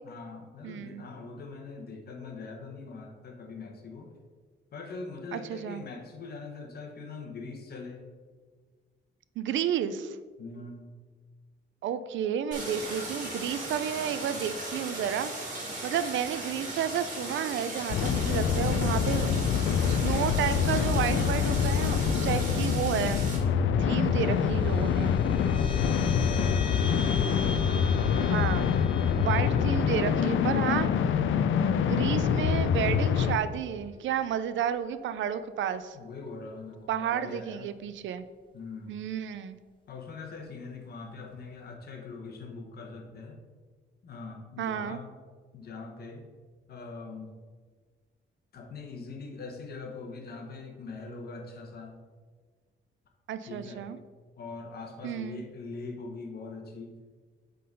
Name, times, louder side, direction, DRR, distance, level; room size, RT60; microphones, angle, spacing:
voice 1, 0.0-4.1 4.7-8.0 10.4-10.9 26.0-26.9 35.9-37.7 38.5-38.9 39.9-43.4 44.0-45.1 45.5-46.2 46.7-47.3 48.5-51.9 53.4-53.8 54.4-56.9, left 4 dB, 55° left, 2 dB, 1.2 m, -42 dB
voice 2, 0.6-1.0 5.3-5.8 9.4-10.2 11.8-19.3 19.9-23.3 23.8-25.1 28.2-28.7 29.1-30.9 31.8-36.0 36.9-38.2 38.9-39.6 44.6-45.0 53.3-54.0 55.0-55.4, right 9 dB, 75° right, 12 dB, 0.5 m, -31 dB
Stream, 12.5-23.4, right 1 dB, 40° right, 2.1 m, -37 dB
sound 1, 17.9-33.4, left 7 dB, 80° left, 0.5 m, -25 dB
sound 2, 23.8-34.6, left 4 dB, 25° left, 0.9 m, -41 dB
7.6 x 3.9 x 5.3 m, 1.5 s
wide cardioid pair, 160°, 20 cm